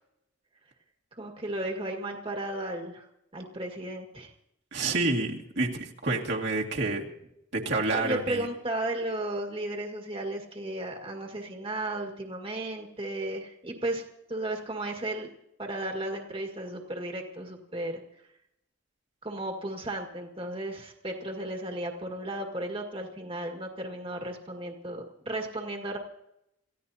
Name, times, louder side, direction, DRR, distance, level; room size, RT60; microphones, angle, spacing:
voice 1, 1.1-3.1 3.3-4.3 7.9-14.0 14.3-15.3 15.6-18.0 19.2-26.0, right 1 dB, 30° right, 2 dB, 1.9 m, -34 dB
voice 2, 4.7-7.0 7.5-8.5, right 3 dB, 60° right, -1 dB, 2.2 m, -28 dB
27.5 x 15.5 x 2.8 m, 0.80 s
head